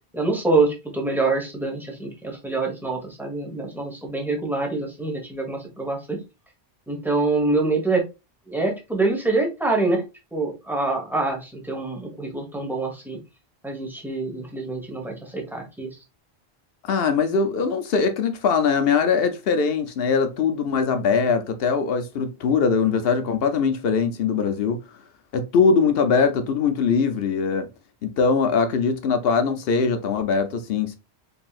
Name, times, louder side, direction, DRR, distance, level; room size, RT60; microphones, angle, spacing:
voice 1, 0.1-6.2 6.9-8.0 8.5-10.0 10.3-13.2 13.6-16.0, right 3 dB, ahead, 1.1 m, -25 dB
voice 2, 16.8-24.8 25.3-27.7 28.0-31.0, left 5 dB, 65° left, 0.8 m, -21 dB
4.2 x 3.4 x 2.4 m
omnidirectional pair, 1.1 m